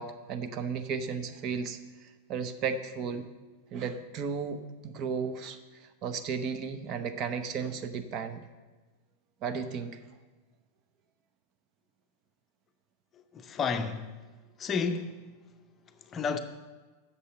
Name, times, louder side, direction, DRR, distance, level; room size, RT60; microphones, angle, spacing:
voice 1, 0.0-3.3 3.7-8.5 9.4-10.0, right 6 dB, 35° right, 0.7 m, -34 dB
voice 2, 13.1-14.1 14.6-15.4 15.9-16.4, left 5 dB, 25° left, 0.6 m, -32 dB
8.3 x 6.8 x 6.8 m
figure-of-eight pair, 90°, 0 cm